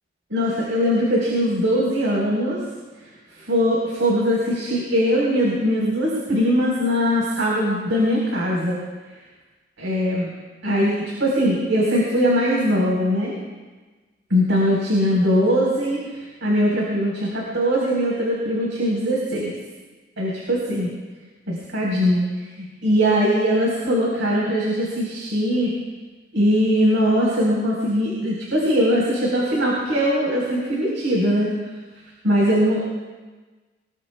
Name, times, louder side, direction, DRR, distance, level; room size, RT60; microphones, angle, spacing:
voice 1, 0.3-2.6 3.4-8.8 9.8-10.3 10.6-10.9 11.2-13.4 14.3-19.6 20.2-20.9 21.5-25.7 26.3-31.5 32.2-32.8, equal, 90° right, -4 dB, 4.6 m, -21 dB
23.5 x 22.0 x 2.4 m, 1.3 s
head